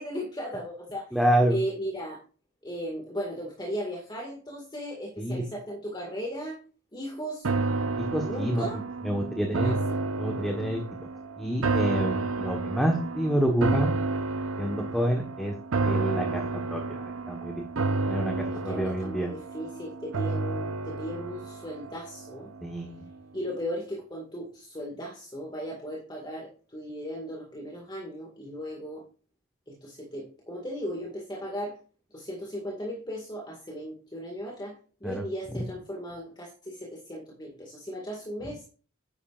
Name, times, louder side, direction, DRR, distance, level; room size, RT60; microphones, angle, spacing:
voice 1, 0.0-1.1 1.5-2.2 2.6-6.6 6.9-7.5 8.2-8.8 9.6-10.0 14.8-15.2 18.5-22.5 23.3-29.0 29.7-31.8 32.1-38.6, equal, 20° left, -1 dB, 2.0 m, -36 dB
voice 2, 1.1-1.6 5.2-5.4 8.0-8.6 9.0-9.8 10.2-10.8 11.4-13.9 14.6-15.5 15.8-16.4 16.7-17.0 17.3-17.6 18.1-19.3 22.6-23.0 35.0-35.2, right 1 dB, ahead, 2 dB, 1.3 m, -28 dB
sound 1, 7.4-22.7 23.1-23.2, right 3 dB, 75° right, 0.7 m, -30 dB
10.5 x 8.9 x 2.5 m, 0.37 s
head